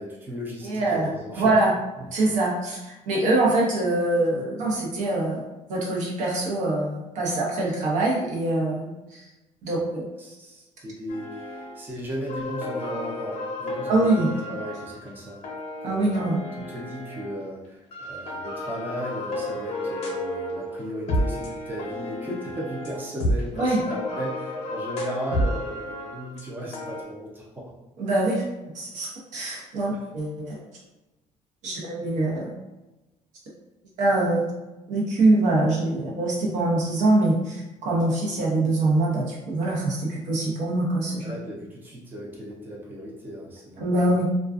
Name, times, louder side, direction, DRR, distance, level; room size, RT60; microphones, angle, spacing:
voice 1, 0.0-1.6 2.0-2.1 10.2-15.4 15.8-16.3 16.6-27.7 29.9-30.0 41.2-44.1, equal, 15° right, -4 dB, 0.5 m, -36 dB
voice 2, 0.6-1.1 1.3-1.7 2.1-5.4 5.7-9.3 9.6-10.1 13.8-14.3 15.8-16.4 23.6-23.8 28.0-28.4 28.7-30.6 31.6-32.5 34.0-34.5 34.9-41.3 43.8-44.3, right 2 dB, 75° right, -3 dB, 0.8 m, -24 dB
sound 1, 11.1-11.8 12.1-17.4 17.9-27.0, left 1 dB, 55° left, 0.6 m, -32 dB
2.4 x 2.2 x 2.4 m, 1.0 s
cardioid pair, 145°, 13 cm